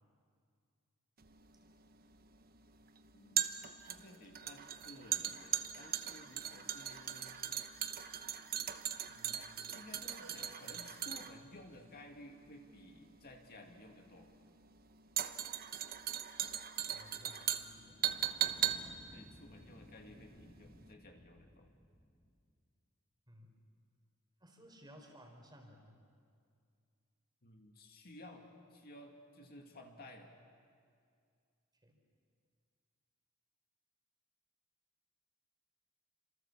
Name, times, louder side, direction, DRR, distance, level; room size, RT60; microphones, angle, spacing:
sound 1, 1.2-20.5 20.7-20.9, right 10 dB, 45° right, 1.0 m, -39 dB
voice 1, 3.1-7.4 9.1-14.3 19.1-21.7 27.4-30.3, left 1 dB, 45° left, 3 dB, 2.2 m, -55 dB
sound 2, 10.2-11.6 14.0-14.2 15.5-15.6, right 1 dB, 80° right, 6.9 m, -60 dB
voice 2, 16.8-18.0 23.3-23.6 24.4-26.0 31.7-32.0, equal, 20° right, 3 dB, 4.0 m, -58 dB
sound 3, 17.7-22.5, left 1 dB, 10° left, 1.5 m, -59 dB
28.5 x 27.0 x 7.3 m, 2.3 s
head